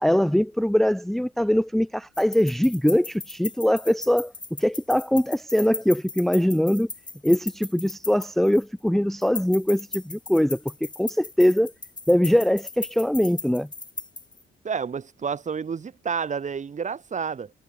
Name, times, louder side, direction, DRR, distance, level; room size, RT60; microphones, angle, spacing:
voice 1, 0.0-4.3 4.6-6.9 7.2-11.7 12.1-13.7, equal, ahead, 0.6 m, -22 dB
sound 1, 2.1-8.8 9.2-14.4, left 3 dB, 20° left, 2.1 m, -38 dB
voice 2, 14.6-17.5, right 6 dB, 40° right, 1.5 m, -30 dB
cardioid pair, 90°, 20 cm